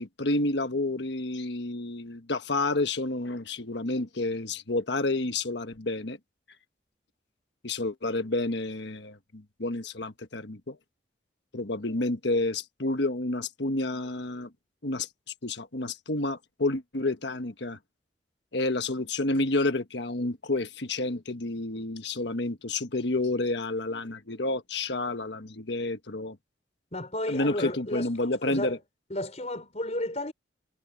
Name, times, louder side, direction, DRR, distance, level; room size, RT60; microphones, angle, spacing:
voice 1, 0.0-6.2 7.6-10.8 11.5-14.5 14.8-15.1 15.4-17.8 18.5-26.4 27.3-28.8, left 2 dB, 70° left, 1.4 m, -30 dB
voice 2, 26.9-28.1 28.4-28.8 29.1-30.3, left 1 dB, 35° left, 4.1 m, -33 dB
head